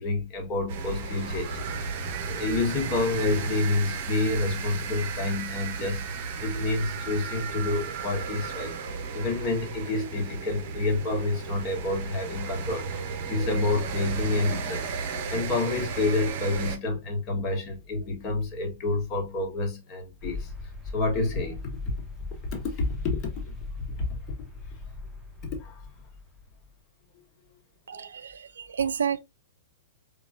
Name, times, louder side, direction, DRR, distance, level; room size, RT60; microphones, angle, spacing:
voice 1, 0.0-1.9 2.3-14.9 15.3-20.5 20.9-21.6 21.9-22.0 22.5-23.4 24.0-24.2 25.5-25.8 27.9-28.1, left 2 dB, 35° left, 1.3 m, -29 dB
sound 1, 0.7-16.8, right 5 dB, 45° right, 0.7 m, -34 dB
sound 2, 20.2-26.7, left 3 dB, 5° right, 0.9 m, -39 dB
voice 2, 27.9-29.2, right 7 dB, 70° right, 0.3 m, -30 dB
4.3 x 2.3 x 2.5 m
figure-of-eight pair, 105°, 0 cm